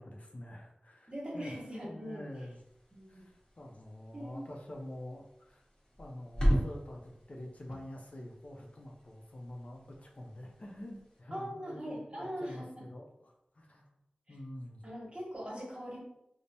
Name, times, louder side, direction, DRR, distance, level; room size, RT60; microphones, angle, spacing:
voice 1, 0.0-1.6 1.9-2.6 3.1-5.6 6.0-13.9 14.3-14.8, left 1 dB, 50° left, 0 dB, 0.5 m, -47 dB
voice 2, 1.1-2.2 2.9-3.2 4.1-4.4 11.3-12.8 14.3-14.4 14.8-16.0, equal, 35° right, -4 dB, 1.1 m, -41 dB
sound 1, 2.3-11.2, equal, 30° left, 1.0 m, -38 dB
3.2 x 2.0 x 2.6 m, 0.83 s
cardioid pair, 45°, 3 cm